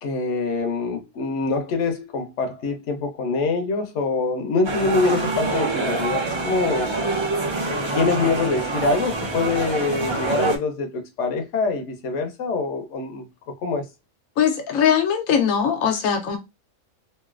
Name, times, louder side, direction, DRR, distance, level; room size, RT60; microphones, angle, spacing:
voice 1, 0.0-7.3 7.9-13.3 13.6-13.9, left 3 dB, 65° left, 1.0 m, -24 dB
sound 1, 4.6-10.6, right 3 dB, 35° right, 0.4 m, -26 dB
voice 2, 14.4-16.4, left 8 dB, 85° left, 1.1 m, -20 dB
3.1 x 2.6 x 2.4 m
omnidirectional pair, 1.4 m